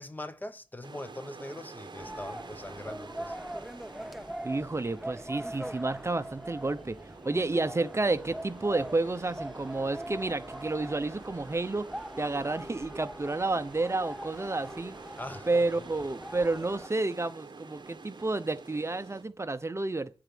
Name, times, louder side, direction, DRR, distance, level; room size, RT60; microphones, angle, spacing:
voice 1, 0.0-3.3 15.2-15.6, left 1 dB, 20° left, 1.0 m, -42 dB
sound 1, 0.8-19.2, right 4 dB, 55° right, 1.4 m, -49 dB
sound 2, 2.0-16.9, right 1 dB, ahead, 0.5 m, -42 dB
voice 2, 4.4-7.0 7.2-15.0 15.5-20.1, right 2 dB, 30° right, 0.9 m, -30 dB
10.0 x 8.7 x 7.8 m
wide cardioid pair, 115°, 9 cm